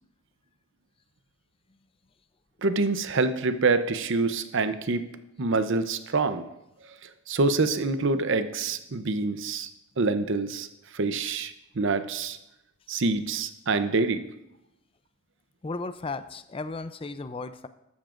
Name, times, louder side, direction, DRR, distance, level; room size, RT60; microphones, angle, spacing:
voice 1, 2.6-5.0 5.4-6.5 7.3-9.7 10.0-10.7 10.9-12.4 12.9-14.2, right 3 dB, 60° right, 10 dB, 0.7 m, -26 dB
voice 2, 15.6-17.7, left 3 dB, 25° left, 12 dB, 0.4 m, -35 dB
13.5 x 12.0 x 2.5 m, 0.87 s
head